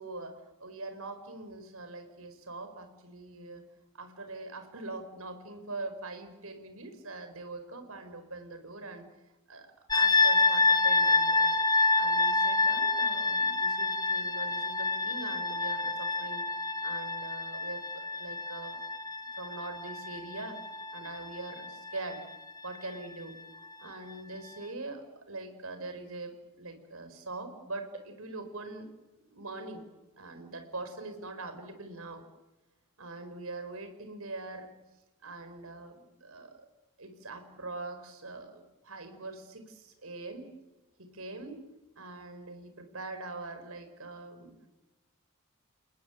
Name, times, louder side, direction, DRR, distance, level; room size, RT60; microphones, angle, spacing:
voice 1, 0.0-3.6 3.9-9.1 9.5-11.5 11.9-16.4 16.8-18.8 19.3-20.6 20.9-22.2 22.6-23.4 23.8-28.9 29.3-29.8 30.2-32.2 33.0-34.7 35.2-36.7 37.0-40.5 41.0-41.6 41.9-44.5, right 2 dB, 75° right, 7 dB, 4.8 m, -43 dB
sound 1, 9.9-22.8, left 3 dB, 15° left, 1.1 m, -28 dB
29.5 x 19.5 x 9.2 m, 1.0 s
head